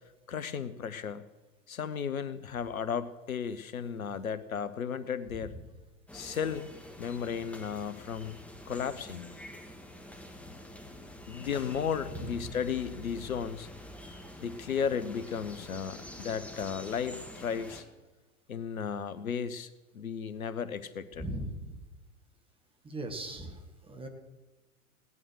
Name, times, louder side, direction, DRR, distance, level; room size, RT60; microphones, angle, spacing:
voice 1, 0.3-1.2 1.7-5.5 6.1-6.6 7.0-8.4 8.7-9.3 11.3-13.7 14.4-17.8 18.5-19.7 19.9-21.2, left 7 dB, 70° left, 14 dB, 1.0 m, -34 dB
sound 1, 6.1-17.8, left 1 dB, 5° left, 2.1 m, -47 dB
voice 2, 12.1-12.5 21.1-21.7 22.8-23.6 23.9-24.1, right 1 dB, 10° right, 4 dB, 2.0 m, -38 dB
17.5 x 11.0 x 6.4 m, 1.1 s
figure-of-eight pair, 95°, 43 cm